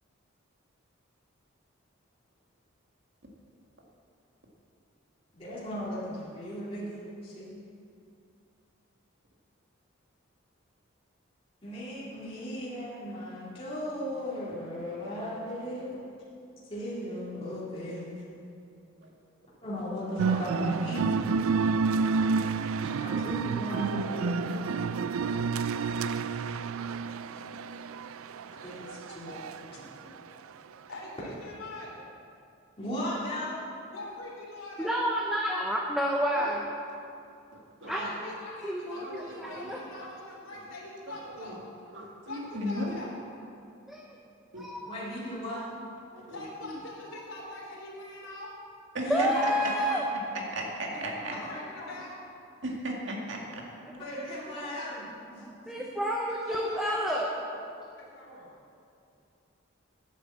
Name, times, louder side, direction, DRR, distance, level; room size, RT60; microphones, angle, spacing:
voice 1, 5.3-7.5 11.6-16.0 16.7-18.1 19.6-21.0 22.8-24.6 25.8-26.0 28.5-29.4 29.7-29.8 32.8-33.6 37.8-38.1 44.9-45.6 49.0-50.0 50.9-51.9 53.9-56.0, equal, 25° left, -8 dB, 2.7 m, -37 dB
sound 1, 20.2-29.6, right 5 dB, 90° right, 0.4 m, -29 dB
voice 2, 24.6-25.0 30.0-30.1 36.4-36.6 37.5-37.9 38.9-39.7 41.1-41.6 41.9-43.0 44.5-44.6 46.1-46.4 48.9-49.5 50.5-51.3 52.6-53.6, right 1 dB, 65° right, -1 dB, 2.1 m, -37 dB
voice 3, 30.9-32.0 33.9-35.0 38.0-41.6 42.3-43.1 46.3-48.5 49.3-50.0 51.3-52.2 56.5-57.5 58.0-58.6, left 2 dB, 80° left, -4 dB, 3.1 m, -43 dB
voice 4, 34.8-36.7 37.9-38.3 38.6-39.8 43.9-44.2 44.6-44.9 46.1-46.2 49.1-50.0 55.4-57.3, equal, ahead, -2 dB, 0.7 m, -30 dB
10.0 x 8.2 x 7.6 m, 2.5 s
head